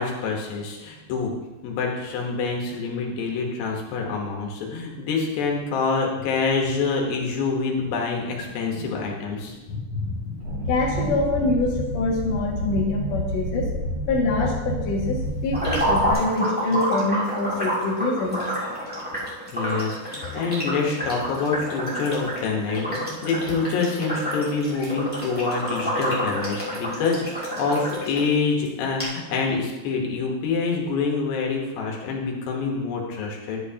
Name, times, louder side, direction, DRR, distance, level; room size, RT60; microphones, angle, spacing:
voice 1, 0.0-1.3 1.6-9.6 19.5-33.6, left 4 dB, 75° left, 0 dB, 3.3 m, -26 dB
voice 2, 9.7-13.7 14.0-18.4, left 2 dB, 50° left, -4 dB, 2.2 m, -25 dB
sound 1, 10.4-16.1, equal, 70° right, 5.9 m, -29 dB
sound 2, 15.5-28.3 28.6-28.7 29.0-29.1, equal, 10° right, 0.5 m, -28 dB
11.0 x 10.0 x 2.9 m, 1.1 s
omnidirectional pair, 5.0 m